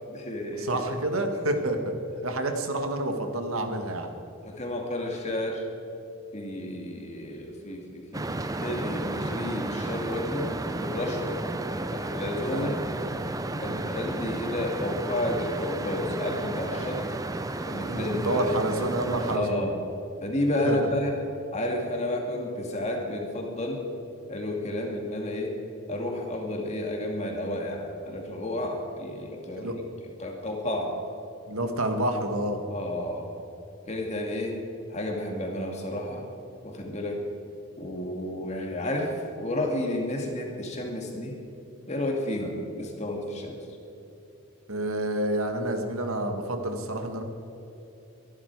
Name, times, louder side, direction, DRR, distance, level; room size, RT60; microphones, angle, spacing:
voice 1, 0.0-0.8 4.4-5.7 6.3-11.4 11.9-12.8 13.6-17.1 17.6-18.7 19.3-19.8 20.2-21.2 21.5-23.9 24.3-25.6 25.9-29.7 30.2-31.0 32.7-33.3 33.9-34.6 34.9-36.2 36.6-37.2 37.8-41.4 41.9-43.6, left 1 dB, 30° left, 1 dB, 2.2 m, -31 dB
voice 2, 0.6-1.8 2.2-4.1 12.5-12.7 13.6-13.8 17.9-19.7 20.6-20.8 29.5-29.8 31.5-32.6 44.7-47.2, right 1 dB, 80° right, 5 dB, 1.7 m, -28 dB
sound 1, 8.1-19.4, right 2 dB, 15° right, 0.5 m, -33 dB
23.5 x 11.5 x 4.7 m, 2.8 s
head